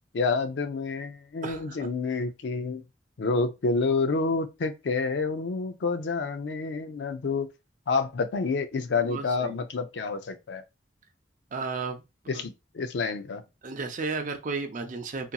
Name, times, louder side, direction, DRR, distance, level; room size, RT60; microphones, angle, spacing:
voice 1, 0.1-2.8 3.2-7.5 7.9-10.6 12.3-13.4, left 4 dB, 80° left, 0.4 m, -28 dB
voice 2, 1.4-1.9 9.0-9.6 11.5-12.0 12.3-12.4 13.6-15.3, right 4 dB, 45° right, 0.5 m, -33 dB
2.8 x 2.6 x 2.2 m
head